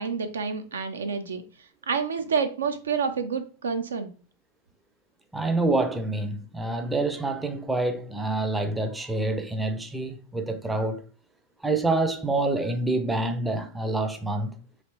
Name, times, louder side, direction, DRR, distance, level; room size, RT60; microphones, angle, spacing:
voice 1, 0.0-1.4 1.9-4.1, right 5 dB, 70° right, 0.4 m, -28 dB
voice 2, 5.3-11.0 11.6-14.5, right 2 dB, 10° right, 0.5 m, -27 dB
3.2 x 2.9 x 2.8 m
figure-of-eight pair, 90°, 0 cm